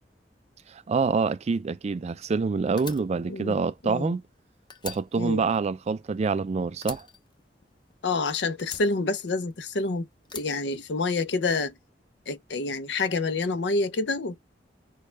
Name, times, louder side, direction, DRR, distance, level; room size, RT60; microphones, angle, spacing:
voice 1, 0.7-4.2 4.8-7.1, right 4 dB, 40° right, 0.3 m, -26 dB
Fire, 2.8-4.4 4.7-6.4 6.8-8.1 8.6-9.7 10.2-11.4, left 5 dB, 25° left, 0.7 m, -44 dB
voice 2, 3.3-4.1 5.1-5.4 8.0-10.1 10.3-11.7 12.3-14.4, left 3 dB, 75° left, 0.6 m, -28 dB
6.4 x 2.3 x 3.3 m
head